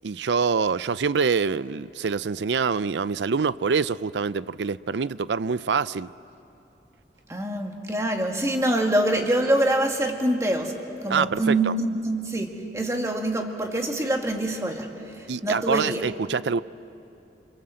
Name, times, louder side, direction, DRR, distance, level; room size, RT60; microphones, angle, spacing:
voice 1, 0.0-6.1 11.1-11.7 15.3-16.6, right 5 dB, 85° right, 0.5 m, -25 dB
voice 2, 7.3-10.7 11.0-16.1, right 1 dB, 15° right, 1.9 m, -25 dB
29.5 x 24.5 x 7.7 m
head